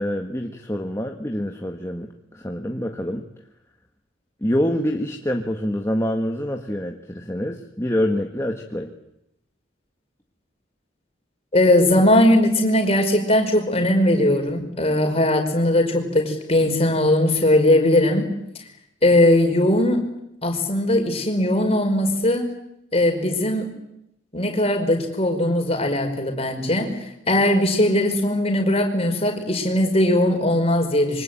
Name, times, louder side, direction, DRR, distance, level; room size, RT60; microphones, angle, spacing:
voice 1, 0.0-3.3 4.4-8.9, equal, 15° left, 2 dB, 1.7 m, -26 dB
voice 2, 11.5-18.3 19.0-20.0 20.4-22.5 22.9-23.7 24.3-27.0 27.3-31.2, left 1 dB, 30° left, 3 dB, 5.2 m, -19 dB
26.5 x 24.5 x 9.1 m, 0.81 s
head